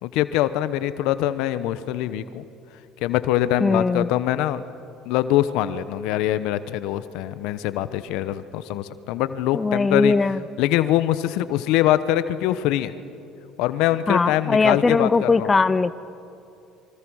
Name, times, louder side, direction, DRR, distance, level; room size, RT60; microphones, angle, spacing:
voice 1, 0.0-2.4 3.0-4.6 5.0-10.1 10.6-12.9 13.6-15.5, left 13 dB, 75° left, 13 dB, 1.0 m, -23 dB
voice 2, 3.6-4.1 9.5-10.4 14.1-15.9, left 4 dB, 25° left, 15 dB, 0.7 m, -20 dB
27.0 x 24.5 x 6.4 m, 2.7 s
supercardioid pair, 80°, 0 cm